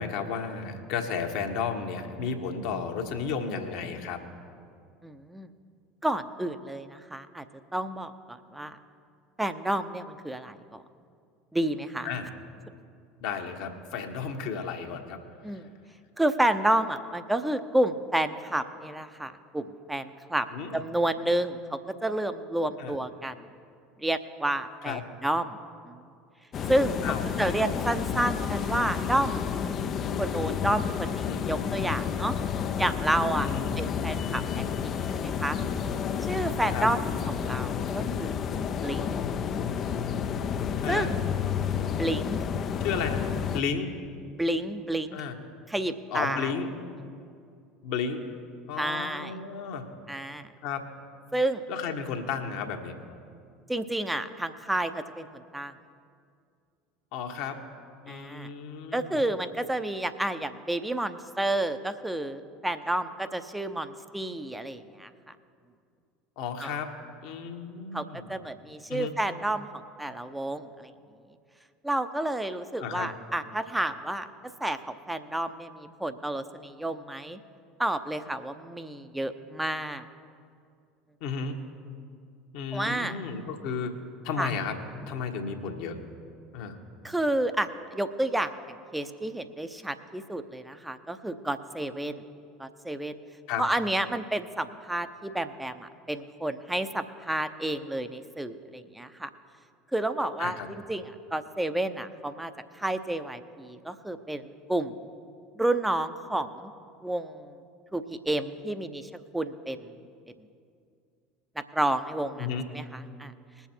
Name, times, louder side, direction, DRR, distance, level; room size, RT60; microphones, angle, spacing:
voice 1, 0.0-4.2 12.0-12.3 13.2-15.2 20.5-20.8 22.8-23.0 24.8-25.0 27.0-27.5 28.1-28.3 31.2-31.4 33.4-33.7 36.7-36.9 40.8-41.1 42.8-43.9 45.1-45.3 46.1-46.7 47.8-48.2 48.7-49.9 50.6-50.9 51.7-52.9 57.1-57.6 58.0-59.2 66.4-66.9 67.2-68.3 68.9-69.1 72.8-73.1 81.2-81.6 82.5-83.9 84.2-84.8 85.1-86.0 86.5-86.8 93.5-93.6 100.4-100.7 112.4-112.6, left 6 dB, 60° left, 3 dB, 1.3 m, -33 dB
voice 2, 5.0-5.5 6.0-7.4 7.7-8.8 9.4-10.8 11.5-12.1 15.4-15.6 16.2-20.5 20.7-23.3 24.0-25.6 25.9-26.0 26.7-26.9 27.4-29.4 30.2-32.3 32.8-33.5 33.8-35.6 36.2-37.1 37.4-38.5 38.8-39.2 40.9-41.1 42.0-42.4 44.4-45.2 45.7-46.5 48.8-49.4 50.1-50.5 51.3-51.6 53.7-55.7 58.1-58.5 58.9-65.1 66.6-66.8 67.9-68.0 68.3-69.7 70.0-70.9 71.8-74.3 74.6-77.4 77.8-80.0 82.7-83.2 84.4-84.5 87.0-92.2 92.6-93.2 93.6-99.3 99.9-104.9 105.6-106.7 107.0-107.5 107.9-109.9 111.6-113.3, right 1 dB, 5° right, 10 dB, 0.8 m, -30 dB
sound 1, 26.5-43.6, left 7 dB, 40° left, 0.6 m, -30 dB
20.5 x 7.1 x 4.5 m, 2.3 s
figure-of-eight pair, 70°, 0 cm